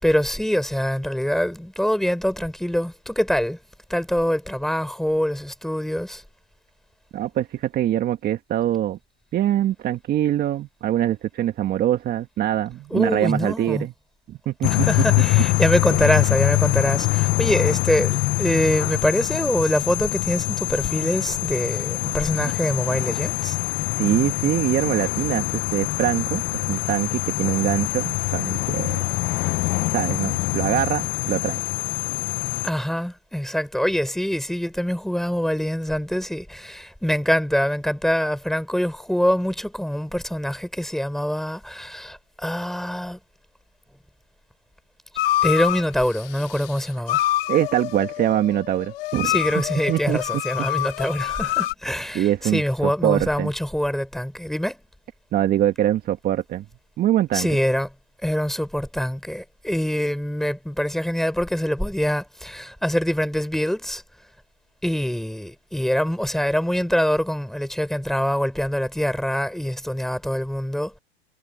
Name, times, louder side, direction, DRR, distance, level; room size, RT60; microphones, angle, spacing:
voice 1, 0.0-3.6 3.9-6.2 12.9-13.9 14.7-23.6 32.6-43.2 45.4-47.2 49.2-54.8 57.3-57.9 58.2-64.0 64.8-71.0, equal, ahead, 5.2 m, -24 dB
voice 2, 7.1-9.0 9.3-13.9 14.3-14.9 23.9-29.0 29.9-31.6 47.5-49.4 49.9-50.2 52.1-53.5 55.3-56.7 57.0-57.5, right 12 dB, 30° right, 1.9 m, -23 dB
sound 1, 14.6-32.7, left 20 dB, 35° left, 0.9 m, -24 dB
sound 2, 45.2-45.8 47.1-51.7, left 14 dB, 65° left, 2.5 m, -26 dB
hypercardioid pair, 120°, 31 cm